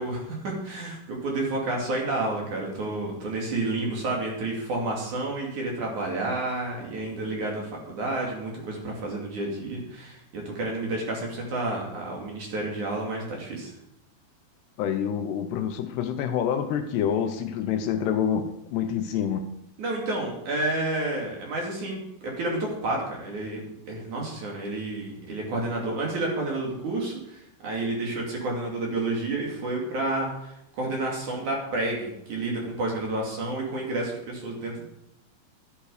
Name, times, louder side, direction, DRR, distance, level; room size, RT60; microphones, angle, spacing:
voice 1, 0.0-13.7 19.8-34.8, right 2 dB, 45° right, -1 dB, 3.6 m, -30 dB
voice 2, 14.8-19.5, left 8 dB, 75° left, 7 dB, 2.7 m, -27 dB
13.0 x 11.0 x 5.0 m, 0.81 s
omnidirectional pair, 5.2 m